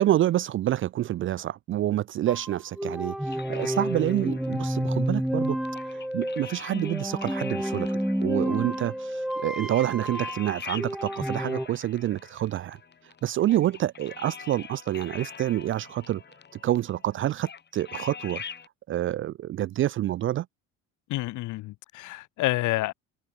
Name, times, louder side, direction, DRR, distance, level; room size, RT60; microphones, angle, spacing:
voice 1, 0.0-5.6 5.9-7.9 8.2-12.8 13.2-16.2 16.6-18.4 18.9-20.5, right 13 dB, 35° right, 0.4 m, -27 dB
sound 1, 2.3-11.7, equal, ahead, 1.5 m, -30 dB
sound 2, 3.3-18.7, left 7 dB, 25° left, 1.5 m, -44 dB
voice 2, 21.1-22.9, left 18 dB, 50° left, 0.7 m, -28 dB
open air
hypercardioid pair, 70°, 37 cm